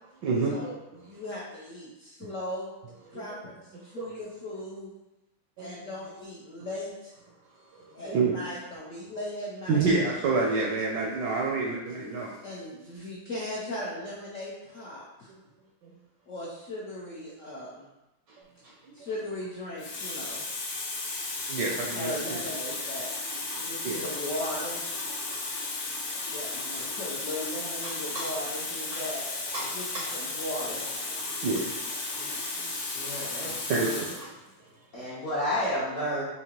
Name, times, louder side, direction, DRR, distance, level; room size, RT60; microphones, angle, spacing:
voice 1, 0.2-0.5 3.1-3.2 4.0-4.2 5.6-5.7 7.7-8.4 9.7-12.3 21.5-22.4 23.8-24.0 27.8-28.3 28.9-29.0 29.5-30.1 31.4-31.7 33.4-34.3, right 3 dB, 75° right, -2 dB, 1.0 m, -28 dB
voice 2, 1.0-2.7 3.1-4.9 5.6-7.1 7.9-9.9 11.9-12.0 12.4-15.3 16.3-17.9 18.9-20.4 21.9-23.1 23.6-24.8 26.3-29.3 29.6-30.9 32.2-32.4, left 1 dB, 75° left, -6 dB, 0.7 m, -38 dB
Water tap faucet, 19.0-19.2 19.8-34.3 35.2-35.4, left 3 dB, 90° left, 1.7 m, -34 dB
voice 3, 33.0-34.0 34.9-36.2, equal, 50° left, -7 dB, 1.0 m, -31 dB
4.8 x 2.8 x 2.9 m, 0.97 s
omnidirectional pair, 2.3 m